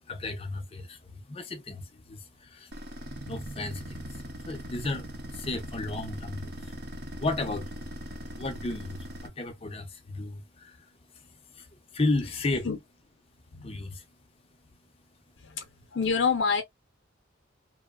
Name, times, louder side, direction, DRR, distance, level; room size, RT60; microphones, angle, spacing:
voice 1, 0.1-2.7 3.3-6.8 7.2-7.7 8.3-10.9 11.1-11.7 11.9-12.7 13.6-14.0, left 2 dB, 30° left, 0.5 m, -34 dB
sound 1, 2.7-9.3, equal, 50° right, 0.6 m, -40 dB
voice 2, 13.5-13.8 15.4-15.7 15.9-16.6, left 5 dB, 65° left, 0.6 m, -27 dB
2.9 x 2.0 x 2.3 m
head